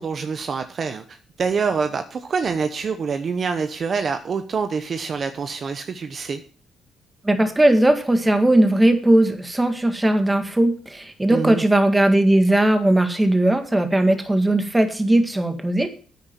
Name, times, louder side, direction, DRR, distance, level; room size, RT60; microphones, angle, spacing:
voice 1, 0.0-6.4 11.3-11.6, right 5 dB, 50° right, 8 dB, 1.0 m, -26 dB
voice 2, 7.2-15.9, right 1 dB, 15° right, 7 dB, 2.0 m, -18 dB
9.8 x 8.9 x 5.9 m, 0.39 s
cardioid pair, 90°, 0 cm